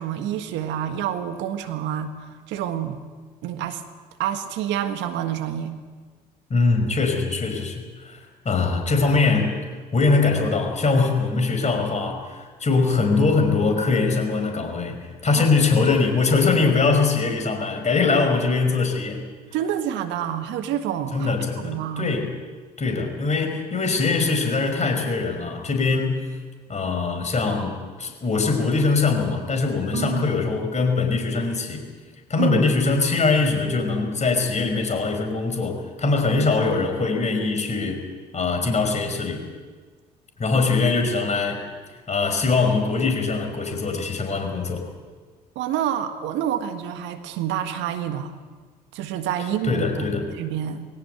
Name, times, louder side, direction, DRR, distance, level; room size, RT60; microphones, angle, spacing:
voice 1, 0.0-3.0 3.4-3.8 4.2-5.8 15.3-15.4 19.5-21.4 21.6-22.2 29.9-30.2 32.4-32.6 40.7-40.8 45.5-48.3 48.9-50.9, right 10 dB, 65° right, 8 dB, 1.6 m, -28 dB
voice 2, 6.5-8.2 8.5-9.6 9.9-19.2 21.1-22.3 22.8-26.2 26.7-31.8 32.3-38.0 38.3-39.5 40.4-41.6 42.1-44.8 49.6-50.3, left 4 dB, 35° left, 5 dB, 5.3 m, -22 dB
21.5 x 17.5 x 8.2 m, 1.5 s
hypercardioid pair, 55°, 20 cm